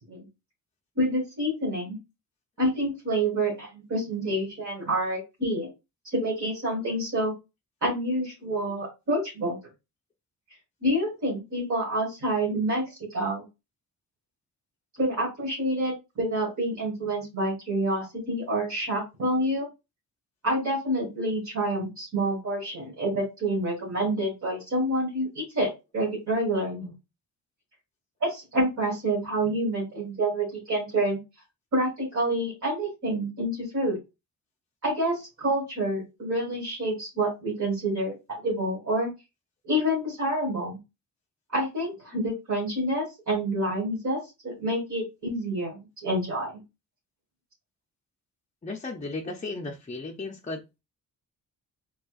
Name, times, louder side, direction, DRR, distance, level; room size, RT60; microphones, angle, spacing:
voice 1, 1.0-2.0 2.6-5.7 6.1-7.3 7.8-9.6 10.8-13.4 15.0-19.7 20.4-25.7 25.9-26.9 28.2-31.2 31.7-34.0 34.8-39.1 39.6-40.8 41.5-46.6, right 1 dB, 50° right, 1.8 m, -28 dB
voice 2, 48.6-50.6, left 3 dB, 20° left, 0.6 m, -35 dB
4.3 x 2.3 x 2.4 m
cardioid pair, 75°, 36 cm